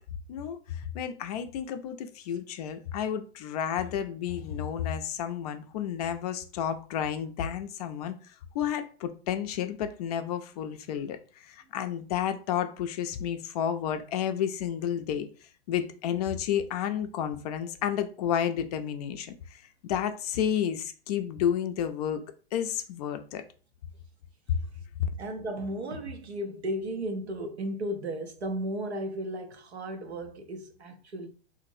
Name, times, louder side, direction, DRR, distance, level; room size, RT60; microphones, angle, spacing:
voice 1, 0.3-8.2 8.5-11.2 11.4-15.3 15.7-22.2 22.5-23.4 24.5-24.6, left 9 dB, 40° left, 0.4 m, -31 dB
voice 2, 25.2-31.3, right 1 dB, 90° right, 0.7 m, -35 dB
2.9 x 2.5 x 2.6 m
hypercardioid pair, 110°, 32 cm